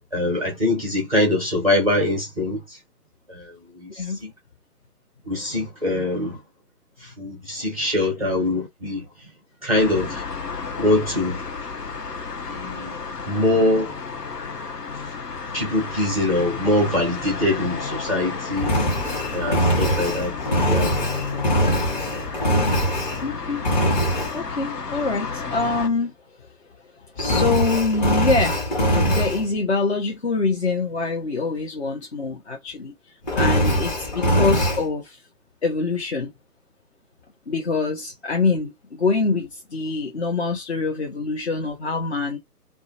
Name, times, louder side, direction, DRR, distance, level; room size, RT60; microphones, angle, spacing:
voice 1, 0.1-2.8 3.3-4.3 5.3-6.4 7.0-9.0 9.6-10.2 10.8-11.5 12.4-13.0 13.3-14.0 15.5-18.8 19.3-20.4 20.7-20.9, left 1 dB, 25° right, 0.6 m, -23 dB
sound 1, 9.7-25.9, left 5 dB, 85° left, 0.9 m, -32 dB
Engine, 18.6-23.3 23.6-24.4 27.2-29.4 33.2-34.8, equal, 30° left, 1.0 m, -22 dB
voice 2, 23.2-23.6 24.3-26.1 27.2-28.6 29.1-32.9 33.4-35.2 35.6-36.3 37.5-42.4, left 4 dB, 45° left, 0.6 m, -24 dB
2.3 x 2.1 x 2.7 m
figure-of-eight pair, 145°, 47 cm